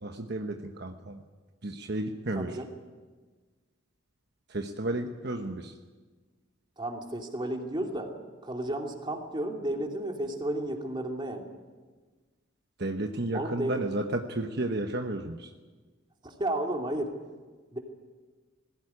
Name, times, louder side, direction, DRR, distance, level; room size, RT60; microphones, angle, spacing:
voice 1, 0.0-1.2 1.6-2.6 4.5-5.7 12.8-15.5, right 1 dB, 60° right, 4 dB, 1.1 m, -32 dB
voice 2, 2.3-2.7 6.8-8.1 8.4-11.5 13.3-13.8 16.2-17.2 17.7-17.8, right 1 dB, 25° right, 2 dB, 2.6 m, -32 dB
20.0 x 16.5 x 9.8 m, 1.4 s
head